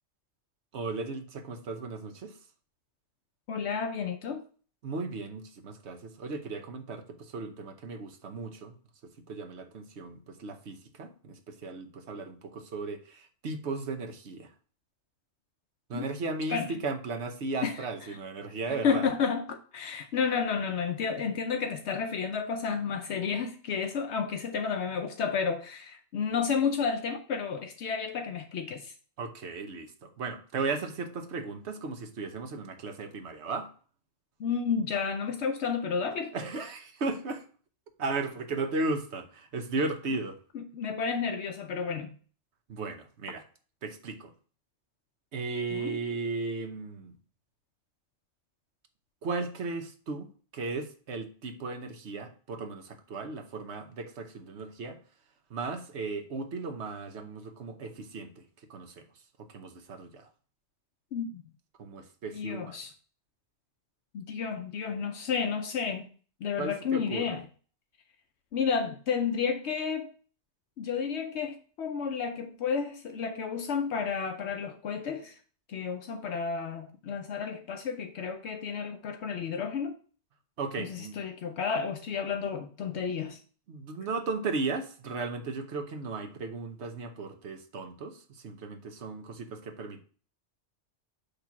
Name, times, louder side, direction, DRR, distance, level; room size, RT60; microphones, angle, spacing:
voice 1, 0.7-2.4 4.8-8.7 9.0-14.5 15.9-19.1 29.2-33.7 36.3-37.4 38.0-40.4 42.7-43.4 43.8-44.3 45.3-47.1 49.2-55.0 55.5-58.4 58.7-59.0 59.4-60.3 61.8-62.8 66.6-67.4 80.6-81.2 83.7-90.0, right 3 dB, 70° right, 1.2 m, -36 dB
voice 2, 3.5-4.4 15.9-16.0 16.5-16.7 17.6-17.8 18.7-28.9 34.4-36.3 40.5-42.1 45.7-46.0 61.1-61.5 62.3-62.9 64.1-66.1 66.4-67.4 68.5-70.1 70.8-75.4 75.7-79.9 80.8-83.4, left 6 dB, 75° left, 0.9 m, -31 dB
6.6 x 3.3 x 5.9 m
omnidirectional pair, 1.2 m